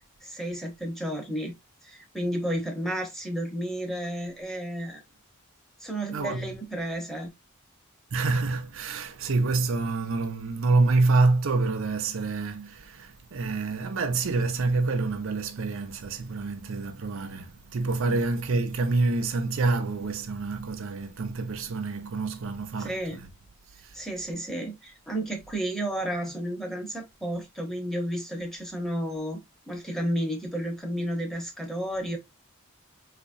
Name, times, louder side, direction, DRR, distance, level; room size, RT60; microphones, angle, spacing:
voice 1, 0.2-1.5 1.8-5.0 5.8-7.3 18.1-18.2 22.8-23.2 23.9-29.4 29.7-32.2, right 1 dB, ahead, 0.9 m, -32 dB
voice 2, 6.1-6.5 8.1-23.0, right 3 dB, 60° right, 0.6 m, -27 dB
4.1 x 2.8 x 2.6 m
head